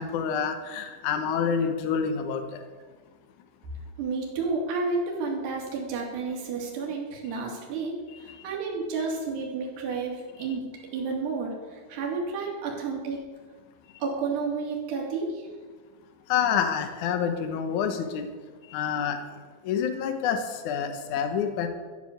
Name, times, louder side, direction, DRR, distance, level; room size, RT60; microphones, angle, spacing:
voice 1, 0.0-2.6 8.3-8.4 16.3-18.3 18.7-19.2 19.6-21.7, left 7 dB, 70° left, 7 dB, 1.8 m, -27 dB
voice 2, 4.0-10.6 10.9-13.2 14.0-15.5, right 4 dB, 65° right, -1 dB, 4.6 m, -31 dB
14.0 x 8.6 x 8.0 m, 1.4 s
omnidirectional pair, 5.2 m